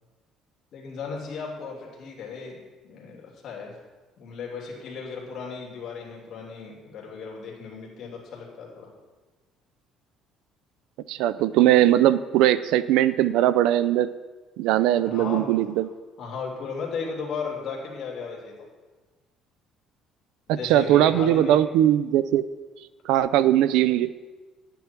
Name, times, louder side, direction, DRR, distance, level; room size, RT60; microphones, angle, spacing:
voice 1, 0.7-2.6 2.8-3.7 4.2-8.9 15.0-15.7 16.2-18.5 20.5-21.6, left 5 dB, 50° left, -1 dB, 3.0 m, -35 dB
voice 2, 11.1-14.1 14.6-15.9 20.5-22.4 23.1-24.1, right 12 dB, 85° right, 16 dB, 0.4 m, -20 dB
11.0 x 9.1 x 4.5 m, 1.3 s
cardioid pair, 125°, 0 cm